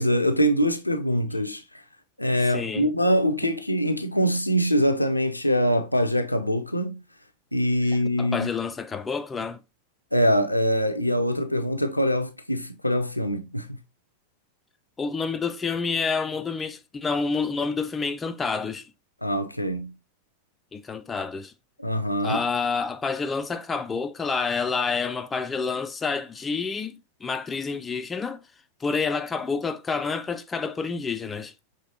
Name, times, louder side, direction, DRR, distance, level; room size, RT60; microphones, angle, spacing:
voice 1, 0.0-1.6 2.2-7.0 7.5-8.5 10.1-13.8 19.2-19.9 21.8-22.4, equal, 85° left, 0.5 m, -23 dB
voice 2, 2.5-2.9 8.2-9.6 15.0-18.9 20.7-21.5 22.2-28.4 28.8-31.5, left 5 dB, 15° left, 0.3 m, -28 dB
5.8 x 3.0 x 2.7 m
figure-of-eight pair, 90°, 0 cm